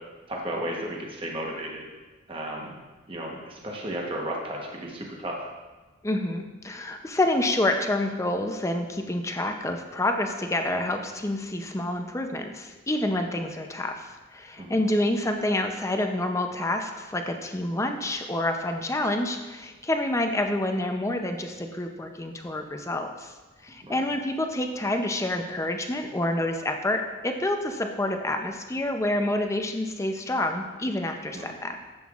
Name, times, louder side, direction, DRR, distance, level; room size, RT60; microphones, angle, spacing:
voice 1, 0.3-1.9 2.3-2.8 3.1-5.4 14.6-14.8 23.8-24.1 31.3-31.5, right 1 dB, 25° right, -1 dB, 1.0 m, -34 dB
voice 2, 6.0-23.3 23.6-31.8, left 1 dB, 15° left, 5 dB, 0.5 m, -28 dB
11.0 x 7.8 x 2.4 m, 1.2 s
head